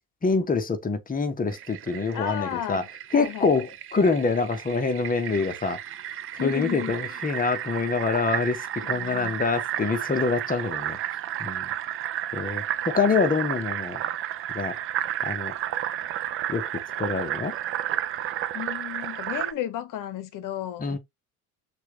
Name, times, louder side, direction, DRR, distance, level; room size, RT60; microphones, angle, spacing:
voice 1, 0.2-2.8 3.1-5.8 6.4-11.0 11.4-11.7 12.3-14.0 14.5-14.8 15.2-15.5 16.5-16.7 17.0-17.6 20.8-21.0, left 4 dB, 20° left, 1.1 m, -25 dB
Fill (with liquid), 1.5-19.5, right 12 dB, 30° right, 0.5 m, -32 dB
voice 2, 2.1-2.9 3.1-3.5 6.4-7.2 8.8-9.4 18.5-21.0, left 11 dB, 45° left, 1.1 m, -33 dB
6.2 x 2.6 x 3.1 m
hypercardioid pair, 65°, 45 cm